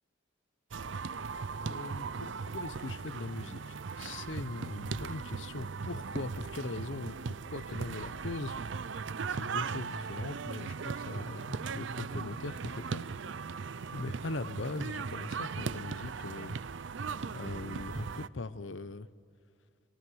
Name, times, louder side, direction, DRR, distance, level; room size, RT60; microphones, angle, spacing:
sound 1, 0.7-18.3, right 5 dB, 70° right, 0.5 m, -38 dB
voice 1, 1.6-7.2 7.5-8.6 9.3-13.1 13.9-16.6 17.3-19.1, left 3 dB, 75° left, 14 dB, 0.8 m, -40 dB
26.5 x 25.0 x 6.4 m, 2.3 s
head